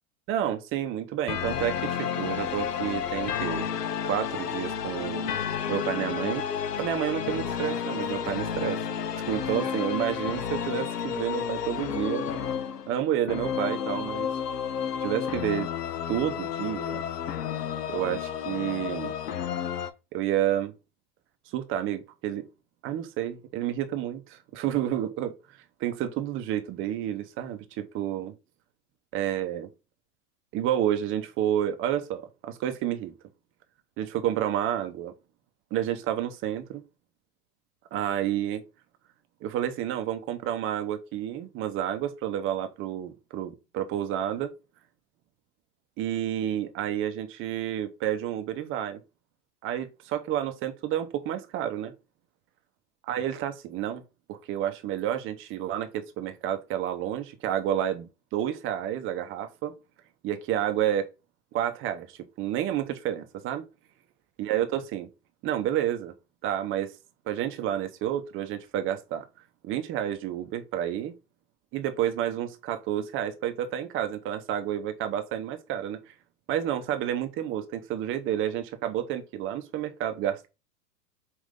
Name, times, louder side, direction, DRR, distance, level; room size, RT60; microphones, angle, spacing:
voice 1, 0.3-3.7 4.0-5.3 5.7-6.5 6.8-8.8 9.3-12.4 12.9-14.3 15.0-15.7 16.1-17.0 17.9-19.1 20.1-20.7 21.5-22.4 22.8-25.3 25.8-28.3 29.1-29.7 30.5-33.1 34.0-35.1 35.7-36.8 37.9-38.6 39.4-44.5 46.0-49.0 49.6-51.9 53.1-54.0 54.3-59.7 60.2-61.1 61.5-63.6 64.4-65.1 65.4-66.1 66.4-66.9 67.3-69.2 69.6-71.1 71.7-76.0 76.5-80.5, right 11 dB, 25° right, 0.6 m, -30 dB
sound 1, 1.3-19.9, left 8 dB, 90° left, 0.7 m, -31 dB
5.1 x 2.6 x 3.6 m
hypercardioid pair, 110°, 47 cm